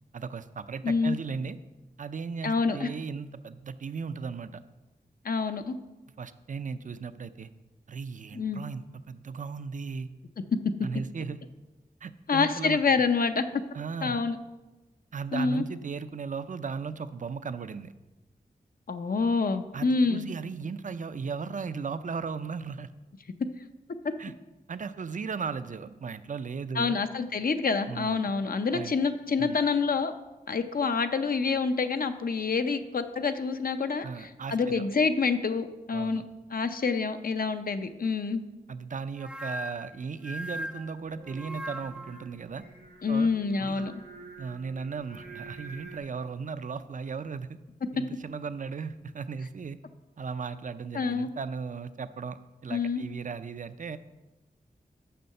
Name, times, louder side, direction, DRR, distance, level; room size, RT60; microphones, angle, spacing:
voice 1, 0.1-1.6 2.0-4.6 6.2-7.5 7.9-10.1 10.8-11.4 12.0-12.8 13.7-14.2 15.1-17.9 19.7-22.9 24.2-24.3 24.7-27.0 27.9-28.3 28.7-29.0 29.4-29.6 34.0-34.9 35.9-36.2 38.7-42.6 43.1-43.3 43.6-43.9 44.4-47.6 47.9-49.8 50.2-54.0, right 5 dB, 55° right, 12 dB, 0.4 m, -36 dB
voice 2, 0.8-1.2 2.4-2.9 5.2-5.8 8.3-8.6 12.3-13.6 14.0-14.4 15.3-15.6 18.9-20.3 24.0-24.1 26.8-30.1 30.5-36.2 36.5-38.4 43.0-43.9 47.9-48.0 50.9-51.3 52.7-53.0, left 4 dB, 65° left, 9 dB, 0.6 m, -27 dB
sound 1, 39.2-42.3, equal, 5° right, 0.6 m, -39 dB
Singing, 41.0-46.0, right 4 dB, 80° right, 2.2 m, -48 dB
6.8 x 5.5 x 6.5 m, 1.1 s
wide cardioid pair, 65°, 16 cm